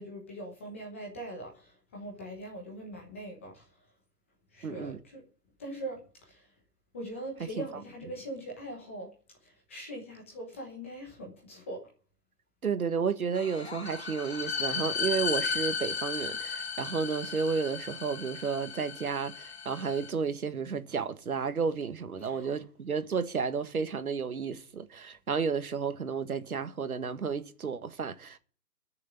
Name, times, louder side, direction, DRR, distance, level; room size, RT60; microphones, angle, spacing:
voice 1, 0.0-3.7 4.5-5.2 5.6-6.5 6.9-9.1 9.4-11.8 22.2-22.6, right 1 dB, 10° left, 1.0 m, -42 dB
voice 2, 4.6-5.0 7.4-7.6 12.6-28.4, right 5 dB, 60° right, 1.8 m, -32 dB
sound 1, 13.4-20.1, left 5 dB, 40° left, 1.5 m, -35 dB
13.0 x 6.8 x 9.4 m
hypercardioid pair, 170°, 48 cm